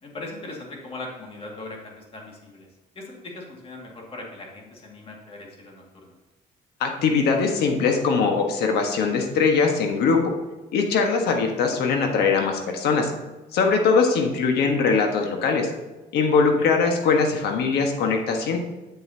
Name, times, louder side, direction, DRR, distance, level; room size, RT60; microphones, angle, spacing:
voice 1, 0.0-2.7 3.0-6.1 16.4-16.7, left 2 dB, 35° left, -1 dB, 2.2 m, -39 dB
voice 2, 6.8-10.2 10.7-13.1 13.5-15.7 16.1-18.6, left 5 dB, 75° left, 3 dB, 1.4 m, -21 dB
8.1 x 7.9 x 2.8 m, 1.1 s
cardioid pair, 110°, 17 cm